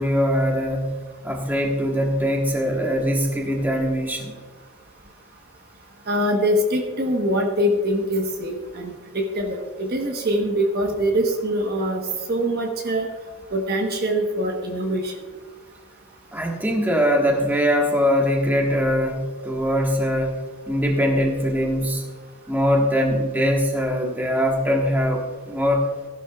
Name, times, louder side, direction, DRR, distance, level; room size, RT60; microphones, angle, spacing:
voice 1, 0.0-4.3 16.3-20.4 20.7-22.0 22.5-25.9, equal, 10° right, 0 dB, 1.4 m, -22 dB
voice 2, 6.1-12.0 12.3-13.1 13.5-15.1, equal, 45° right, 2 dB, 1.2 m, -23 dB
15.5 x 11.5 x 2.4 m, 1.4 s
head